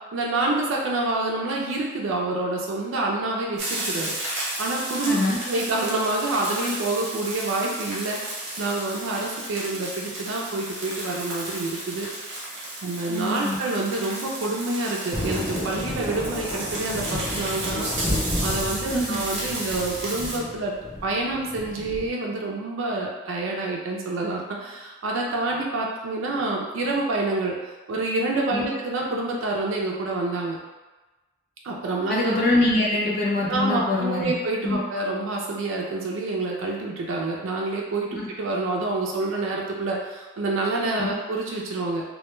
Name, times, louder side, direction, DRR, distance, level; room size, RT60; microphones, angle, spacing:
voice 1, 0.1-4.2 4.6-5.2 5.5-8.2 8.6-12.1 12.8-17.9 18.4-20.7 21.0-27.6 27.9-30.6 31.6-32.2 33.5-42.0, right 2 dB, 75° right, -2 dB, 0.4 m, -27 dB
sound 1, 3.6-20.4, right 1 dB, 55° right, 0.8 m, -33 dB
voice 2, 5.1-5.4 13.1-13.6 18.9-19.2 28.5-28.6 32.1-34.3 34.6-34.8 38.1-38.2 41.0-41.1, left 2 dB, 45° left, -4 dB, 0.5 m, -23 dB
Thunder, 15.1-22.1, left 1 dB, ahead, 0.5 m, -32 dB
2.2 x 2.1 x 3.0 m, 1.2 s
head